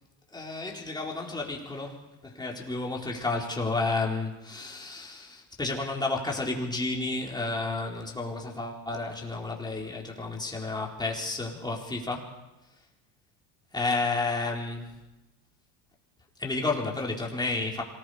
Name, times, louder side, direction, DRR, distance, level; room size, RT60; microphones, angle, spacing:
voice 1, 0.3-12.3 13.7-14.9 16.4-17.8, left 3 dB, 10° left, -1 dB, 4.3 m, -31 dB
26.0 x 20.0 x 5.1 m, 1.0 s
supercardioid pair, 115°, 42 cm